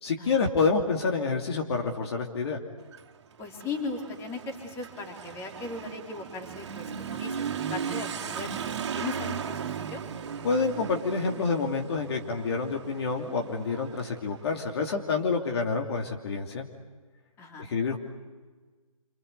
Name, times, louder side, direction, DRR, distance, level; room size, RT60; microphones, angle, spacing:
voice 1, 0.0-2.6 10.4-16.6 17.6-18.0, left 4 dB, 50° left, 2 dB, 2.9 m, -28 dB
Motorcycle / Accelerating revving vroom, 2.8-15.1, right 7 dB, 55° right, 2.4 m, -37 dB
voice 2, 3.4-8.5 8.9-10.0 17.4-17.7, left 3 dB, 15° left, 3 dB, 3.6 m, -38 dB
28.0 x 26.0 x 8.2 m, 1.4 s
figure-of-eight pair, 145°, 18 cm